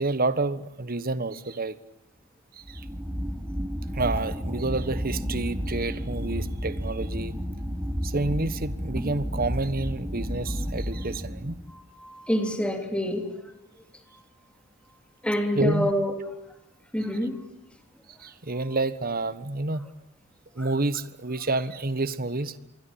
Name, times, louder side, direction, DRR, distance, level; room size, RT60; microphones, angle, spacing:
voice 1, 0.0-1.8 2.7-2.8 3.9-7.3 8.0-11.6 15.5-15.9 18.2-19.9 20.5-22.6, right 2 dB, 45° right, 14 dB, 1.4 m, -29 dB
sound 1, 2.6-11.7, equal, 10° right, 3.0 m, -32 dB
voice 2, 11.7-13.4 15.2-16.2 16.9-17.4 20.6-20.7, equal, 5° left, 5 dB, 3.3 m, -27 dB
27.0 x 23.0 x 8.8 m, 0.87 s
head